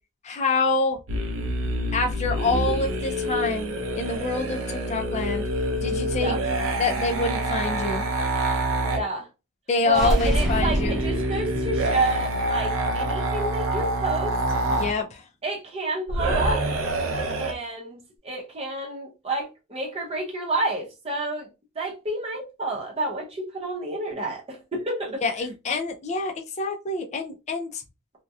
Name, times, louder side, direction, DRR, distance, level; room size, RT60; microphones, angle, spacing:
voice 1, 0.2-1.0 1.9-5.5 5.8-6.4 6.8-8.0 9.7-11.0 14.8-15.2 25.2-27.8, left 3 dB, 30° left, 0.4 m, -26 dB
sound 1, 1.1-9.0 10.0-15.0 16.1-17.5, right 1 dB, 65° right, 0.6 m, -26 dB
voice 2, 8.9-9.3 9.8-14.4 15.4-16.6 17.4-21.5 21.7-25.2, right 2 dB, 30° right, 0.7 m, -30 dB
sound 2, 9.8-13.7, equal, ahead, 0.8 m, -28 dB
2.8 x 2.2 x 2.3 m
head